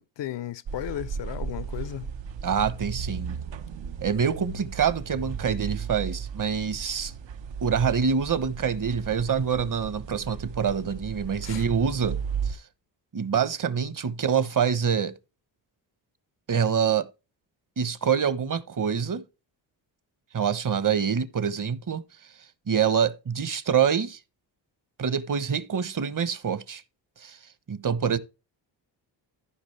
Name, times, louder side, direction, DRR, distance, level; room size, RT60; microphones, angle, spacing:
voice 1, 0.0-2.1 11.4-11.6, left 12 dB, 70° left, 0.8 m, -35 dB
sound 1, 0.7-12.5, right 6 dB, 75° right, 1.1 m, -35 dB
voice 2, 2.4-3.4 4.0-7.1 7.6-12.2 12.4-12.6 13.1-15.1 16.5-17.1 17.8-19.2 20.3-22.0 22.7-24.2 25.0-26.8 27.2-27.4 27.7-28.2, right 7 dB, 45° right, 1.2 m, -26 dB
14.5 x 5.3 x 3.4 m
cardioid pair, 65°, 44 cm